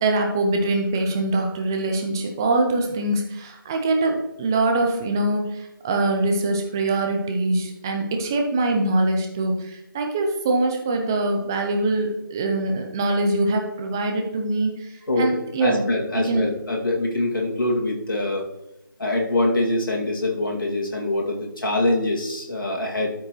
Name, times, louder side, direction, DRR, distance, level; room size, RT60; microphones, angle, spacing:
voice 1, 0.0-15.8 16.1-16.5, right 2 dB, 10° right, 3 dB, 0.5 m, -23 dB
voice 2, 15.6-18.5 19.0-23.1, left 2 dB, 65° left, -2 dB, 2.3 m, -24 dB
12.5 x 4.8 x 3.1 m, 0.90 s
figure-of-eight pair, 160°, 12 cm